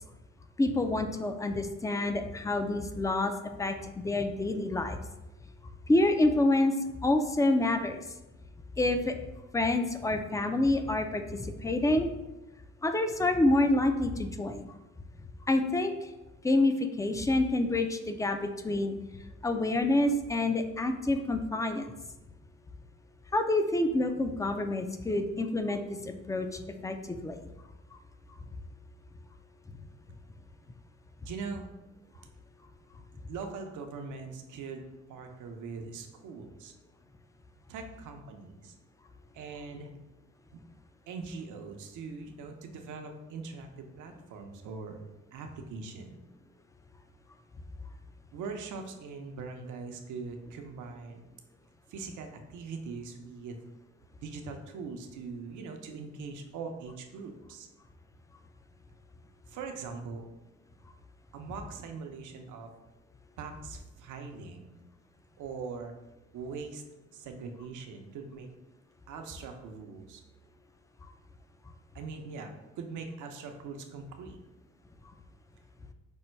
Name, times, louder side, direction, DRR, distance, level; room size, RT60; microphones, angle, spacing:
voice 1, 0.6-5.0 5.9-6.7 7.0-8.0 8.8-9.1 9.5-12.1 12.8-14.7 15.5-15.9 16.4-19.0 19.4-21.9 23.3-27.4, left 2 dB, 10° left, 7 dB, 0.4 m, -27 dB
voice 2, 31.2-31.6 33.3-34.8 35.1-36.7 37.7-38.7 39.3-39.9 40.5-40.6 41.1-45.0 45.3-46.2 48.3-51.2 51.9-53.6 54.2-57.7 59.5-60.3 61.3-62.7 63.4-64.7 65.4-65.9 66.3-66.8 67.1-68.5 69.1-70.2 71.9-74.4, right 4 dB, 80° right, 4 dB, 0.7 m, -41 dB
5.3 x 2.2 x 4.4 m, 1.0 s
cardioid pair, 90°, 30 cm